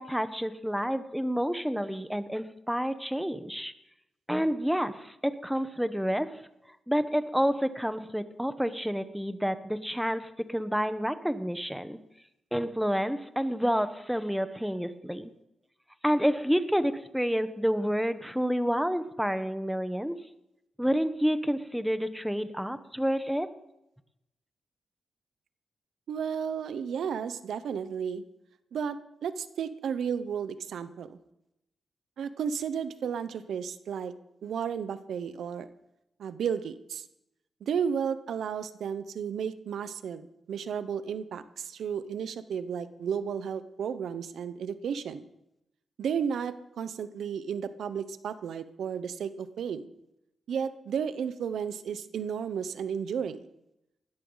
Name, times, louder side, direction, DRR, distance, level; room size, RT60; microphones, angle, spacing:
voice 1, 0.0-3.7 4.3-5.1 5.4-6.4 6.9-12.0 12.5-15.3 16.0-20.1 20.8-23.5, equal, ahead, 11 dB, 1.1 m, -29 dB
voice 2, 26.1-28.2 28.7-31.2 32.2-34.1 34.4-35.7 36.2-37.0 37.6-45.3 46.0-49.9 50.5-53.5, right 7 dB, 85° right, 13 dB, 0.9 m, -33 dB
19.5 x 13.5 x 4.0 m, 0.86 s
cardioid pair, 70°, 0 cm